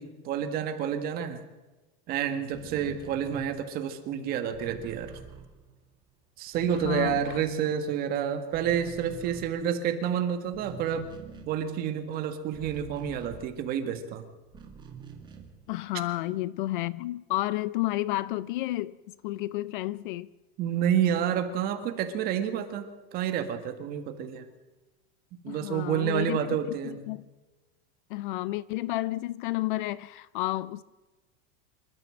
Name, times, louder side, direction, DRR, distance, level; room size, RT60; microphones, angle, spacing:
voice 1, 0.0-1.4 2.1-5.1 6.4-11.1 11.5-14.2 20.6-24.5 25.4-27.0, right 8 dB, 30° right, 1.7 m, -29 dB
sound 1, 2.5-6.1 6.4-8.1 8.4-14.0 14.5-15.7, right 6 dB, 15° right, 2.1 m, -47 dB
voice 2, 6.6-7.4 15.7-19.0 19.2-20.3 25.5-26.6 26.8-27.3 28.1-30.8, left 17 dB, 55° left, 0.5 m, -31 dB
26.0 x 13.0 x 7.7 m
supercardioid pair, 175°, 31 cm